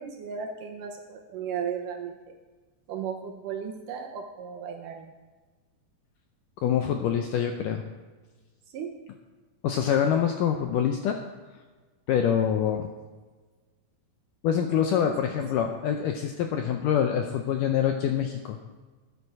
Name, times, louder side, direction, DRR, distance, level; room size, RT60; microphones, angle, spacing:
voice 1, 0.0-2.4 2.9-5.1 8.7-8.9 14.7-15.1, right 7 dB, 75° right, 3 dB, 2.1 m, -35 dB
voice 2, 6.6-7.8 9.6-11.2 12.1-12.9 14.4-18.6, left 8 dB, 80° left, 5 dB, 1.9 m, -25 dB
12.5 x 10.0 x 4.7 m, 1.3 s
omnidirectional pair, 4.5 m